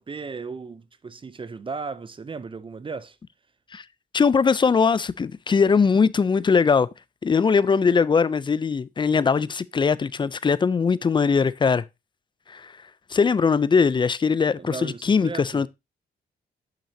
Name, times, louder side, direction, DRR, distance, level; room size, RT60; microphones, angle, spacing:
voice 1, 0.0-3.2 14.5-15.7, right 4 dB, 25° right, 0.5 m, -36 dB
voice 2, 4.1-6.9 7.2-11.8 12.5-12.7 13.1-15.7, left 5 dB, 25° left, 0.4 m, -21 dB
8.8 x 5.7 x 2.7 m
cardioid pair, 100°, 19 cm